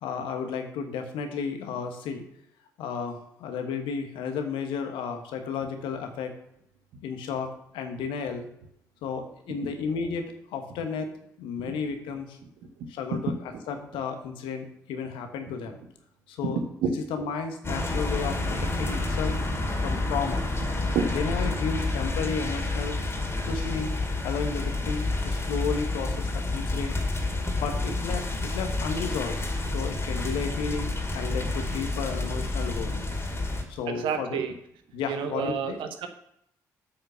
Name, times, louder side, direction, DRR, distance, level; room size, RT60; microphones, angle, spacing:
voice 1, 0.0-2.2 2.8-6.3 7.0-8.5 9.0-12.4 12.9-15.8 16.3-16.6 17.1-19.4 19.8-20.5 21.1-23.0 23.4-26.9 27.5-29.4 29.7-33.0 33.7-34.4 34.9-35.8, left 6 dB, 70° left, 6 dB, 1.3 m, -33 dB
sound 1, 17.6-33.6, left 2 dB, 30° left, 2.3 m, -29 dB
voice 2, 33.9-34.5 35.1-36.1, right 6 dB, 65° right, 7 dB, 1.0 m, -28 dB
8.5 x 5.7 x 5.7 m, 0.75 s
figure-of-eight pair, 40°, 9 cm